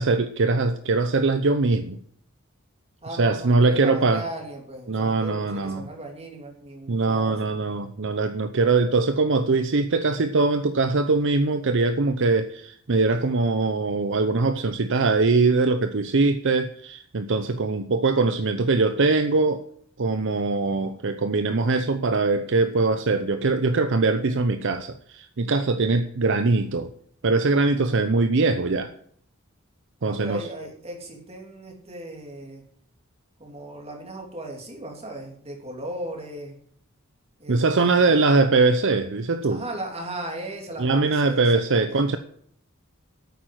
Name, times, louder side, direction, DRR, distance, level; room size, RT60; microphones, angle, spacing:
voice 1, 0.0-2.0 3.2-4.2 4.9-5.8 6.9-19.6 20.0-26.9 27.2-28.9 30.0-30.4 37.5-39.6 40.8-42.2, right 3 dB, 60° right, 9 dB, 0.7 m, -22 dB
voice 2, 3.0-7.6 27.9-28.0 30.0-32.6 33.4-36.6 37.4-38.3 39.4-42.2, right 1 dB, 30° right, 1 dB, 3.3 m, -37 dB
9.3 x 8.7 x 7.9 m, 0.63 s
head